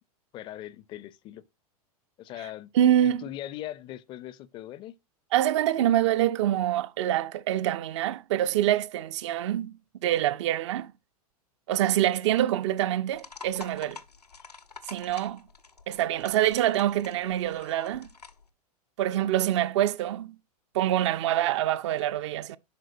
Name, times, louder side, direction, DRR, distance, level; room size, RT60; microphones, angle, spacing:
voice 1, 0.3-1.4 2.2-2.7 3.0-5.0, left 13 dB, 25° left, 0.4 m, -40 dB
voice 2, 2.7-3.2 5.3-9.7 10.0-10.9 11.7-14.0 14.9-15.4 15.9-18.1 19.0-20.3 20.7-22.6, right 12 dB, 50° right, 0.5 m, -25 dB
sound 1, 13.1-18.5, left 5 dB, 85° left, 0.8 m, -47 dB
11.0 x 3.8 x 2.5 m
figure-of-eight pair, 95°, 20 cm